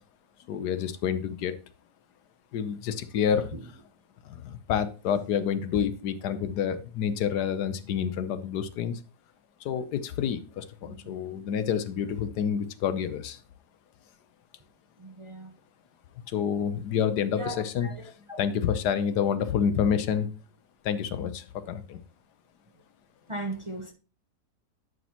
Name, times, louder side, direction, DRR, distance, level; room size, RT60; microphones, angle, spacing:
voice 1, 0.5-1.6 2.5-3.5 4.2-9.0 9.6-13.4 16.3-18.1 18.4-20.3 20.8-22.0, left 8 dB, 85° left, 1.4 m, -28 dB
voice 2, 10.8-11.1 15.0-15.5 17.3-18.4 23.3-23.9, right 2 dB, 25° right, 0.7 m, -38 dB
11.0 x 5.3 x 2.9 m
omnidirectional pair, 1.7 m